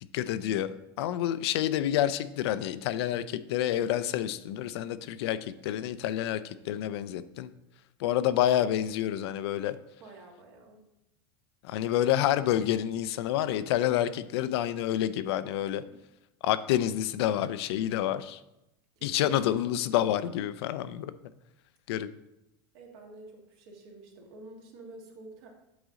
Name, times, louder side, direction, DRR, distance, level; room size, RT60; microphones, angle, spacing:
voice 1, 0.1-7.5 8.0-9.8 11.6-15.8 16.4-18.4 19.0-21.1 21.9-22.1, left 11 dB, 75° left, 13 dB, 0.4 m, -28 dB
voice 2, 10.0-10.8 15.7-15.9 18.9-19.4 22.7-25.5, right 2 dB, 65° right, 0 dB, 1.7 m, -49 dB
8.0 x 3.9 x 3.7 m, 0.89 s
supercardioid pair, 120°, 14 cm